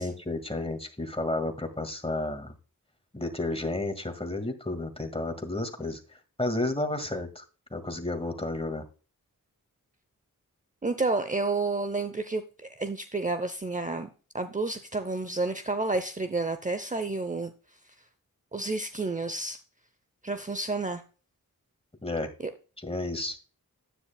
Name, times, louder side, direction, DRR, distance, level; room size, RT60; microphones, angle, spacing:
voice 1, 0.0-2.5 3.1-7.4 7.7-8.8 22.0-22.3 22.8-23.4, left 2 dB, 15° left, 6 dB, 1.8 m, -32 dB
voice 2, 10.8-12.4 12.8-14.1 14.3-17.5 18.5-19.6 20.2-21.0, right 3 dB, 20° right, 9 dB, 0.7 m, -30 dB
10.0 x 9.3 x 2.2 m, 0.35 s
wide cardioid pair, 65°, 34 cm